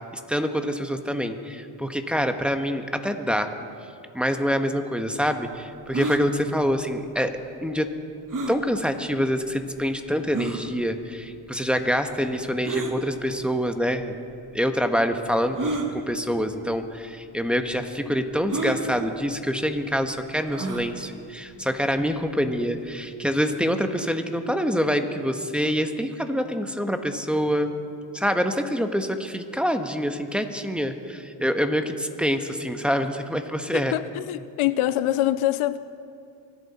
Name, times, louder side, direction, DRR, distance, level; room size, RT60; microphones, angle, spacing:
voice 1, 0.1-3.5 4.1-7.9 8.5-14.1 14.5-27.7 28.1-33.9, equal, ahead, 6 dB, 1.3 m, -26 dB
sound 1, 5.9-6.2 8.3-8.6 9.4-9.5 10.3-10.6 12.6-12.9 14.0-14.1 15.5-15.9 16.8-16.9 17.2-17.3 18.5-18.8 20.5-20.9, right 3 dB, 40° right, 2.0 m, -28 dB
voice 2, 33.9-35.8, left 14 dB, 80° left, 15 dB, 0.6 m, -24 dB
25.0 x 11.0 x 4.3 m, 2.4 s
cardioid pair, 65°, 49 cm